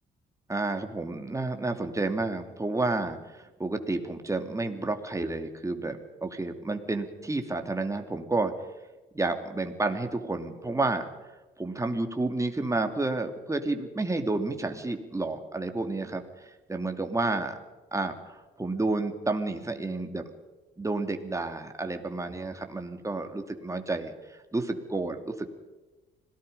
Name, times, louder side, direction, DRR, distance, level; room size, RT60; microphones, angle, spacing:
voice 1, 0.5-8.5 9.1-11.1 11.6-17.6 17.9-20.3 20.8-25.5, right 2 dB, 15° right, 5 dB, 2.7 m, -30 dB
26.0 x 18.5 x 5.5 m, 1.2 s
cardioid pair, 90°, 20 cm